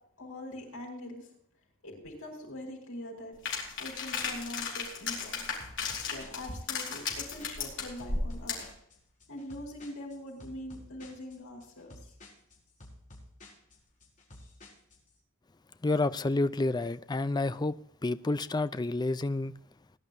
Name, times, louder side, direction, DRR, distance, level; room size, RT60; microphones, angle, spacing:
voice 1, 0.2-1.3 1.8-3.4 3.8-5.5 6.1-8.6 9.3-12.1, left 1 dB, 80° left, 5.7 m, -43 dB
sound 1, 3.4-8.7, left 5 dB, 60° left, 4.4 m, -35 dB
sound 2, 5.6-15.1, left 1 dB, 40° left, 5.1 m, -53 dB
voice 2, 15.8-17.7 18.0-19.5, left 2 dB, 20° left, 0.4 m, -29 dB
20.0 x 11.0 x 2.7 m
head